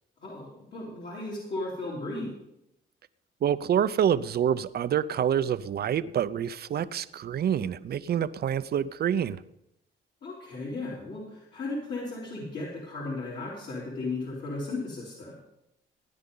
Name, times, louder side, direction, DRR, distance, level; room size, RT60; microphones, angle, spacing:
voice 1, 0.2-2.4 10.2-15.4, left 2 dB, 60° left, -6 dB, 3.8 m, -35 dB
voice 2, 3.4-9.4, right 9 dB, 55° right, 15 dB, 0.6 m, -27 dB
17.0 x 9.7 x 3.9 m, 0.85 s
cardioid pair, 90°, 20 cm